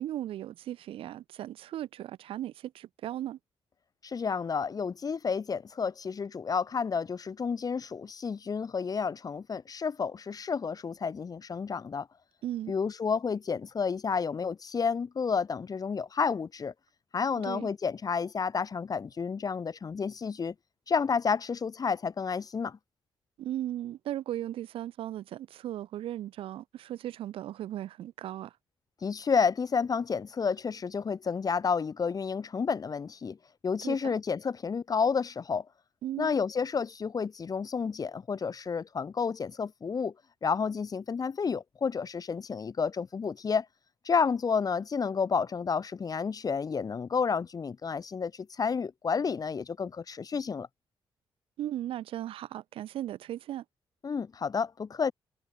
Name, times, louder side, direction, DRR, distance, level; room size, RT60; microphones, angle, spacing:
voice 1, 0.0-3.4 12.4-12.7 17.4-17.7 23.4-28.5 33.8-34.1 36.0-36.3 51.6-53.6, right 12 dB, 85° right, 4.3 m, -37 dB
voice 2, 4.0-12.1 12.7-16.7 17.1-20.5 20.9-22.8 29.0-33.4 33.6-35.7 36.2-40.1 40.4-43.7 44.0-50.7 54.0-55.1, left 5 dB, 45° left, 4.5 m, -30 dB
cardioid pair, 85°, 9 cm